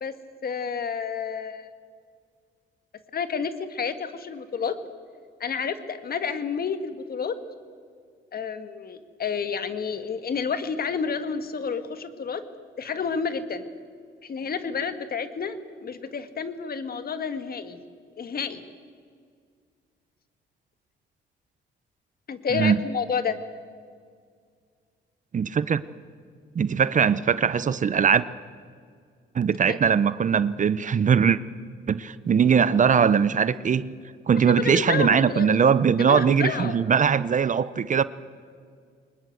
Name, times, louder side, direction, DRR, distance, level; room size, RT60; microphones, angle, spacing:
voice 1, 0.4-1.7 3.1-4.8 5.4-7.3 8.3-12.4 12.8-13.7 14.2-17.8 18.2-18.6 22.3-23.4 29.7-29.8 34.5-35.6 36.1-36.8, left 6 dB, 50° left, 1.9 m, -30 dB
voice 2, 25.3-25.8 26.5-28.2 29.3-31.4 31.9-33.9 34.3-38.0, right 7 dB, 40° right, 0.7 m, -21 dB
23.5 x 20.5 x 7.9 m
cardioid pair, 90°, 20 cm